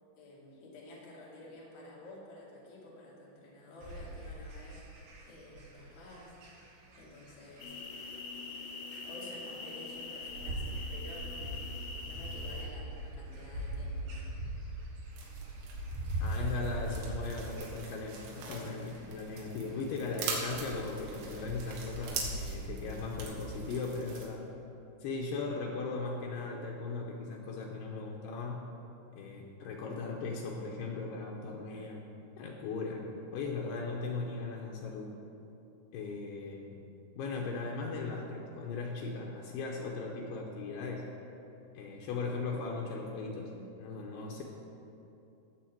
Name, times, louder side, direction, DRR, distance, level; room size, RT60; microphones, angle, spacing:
voice 1, 0.2-4.8 5.3-6.7 7.0-7.7 9.0-11.7 12.0-14.3, left 1 dB, 45° left, -5 dB, 2.8 m, -51 dB
sound 1, 3.8-23.2, right 1 dB, 60° right, 3.0 m, -41 dB
sound 2, 7.6-12.7, left 3 dB, 70° left, 3.0 m, -43 dB
sound 3, 15.1-24.2, right 4 dB, 90° right, 4.3 m, -43 dB
voice 2, 16.2-24.4 25.0-28.7 29.2-32.0 32.4-33.1 33.3-35.2 35.9-36.8 37.1-41.1 41.7-43.5 43.8-44.4, left 3 dB, 85° left, -1 dB, 2.3 m, -38 dB
17.5 x 7.2 x 4.5 m, 2.8 s
omnidirectional pair, 5.9 m